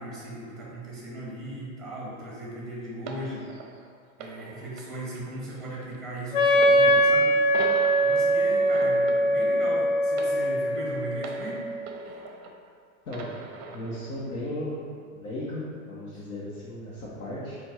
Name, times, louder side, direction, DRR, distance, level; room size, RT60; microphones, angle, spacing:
voice 1, 0.0-3.5 4.2-7.3 8.0-11.6 16.1-16.2, right 1 dB, ahead, -5 dB, 0.8 m, -38 dB
sound 1, 3.1-12.7 13.1-14.1 14.9-15.1, right 4 dB, 45° right, 0.5 m, -42 dB
Wind instrument woodwind instrument, 6.3-12.0, right 1 dB, 40° left, 0.4 m, -22 dB
voice 2, 13.7-14.9 15.1-17.6, left 1 dB, 85° left, -8 dB, 0.9 m, -35 dB
4.3 x 2.2 x 3.5 m, 2.1 s
hypercardioid pair, 105°, 43 cm